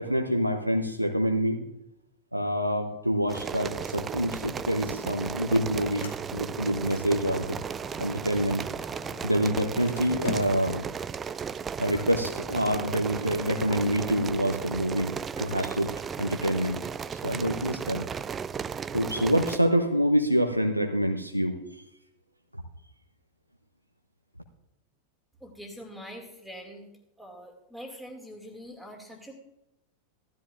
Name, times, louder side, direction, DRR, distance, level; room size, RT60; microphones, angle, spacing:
voice 1, 0.0-1.6 2.3-7.6 8.0-8.7 9.2-10.9 11.8-16.8 17.1-18.1 18.9-21.8 22.5-22.6, equal, 90° right, 4 dB, 0.8 m, -27 dB
sound 1, 3.3-19.6, right 6 dB, 20° right, 0.3 m, -35 dB
Sliding door, 4.7-14.7, left 4 dB, 65° left, 2.4 m, -45 dB
voice 2, 25.4-26.9 27.2-29.3, equal, ahead, 0 dB, 2.4 m, -44 dB
16.0 x 12.5 x 2.5 m, 0.87 s
figure-of-eight pair, 90°, 0 cm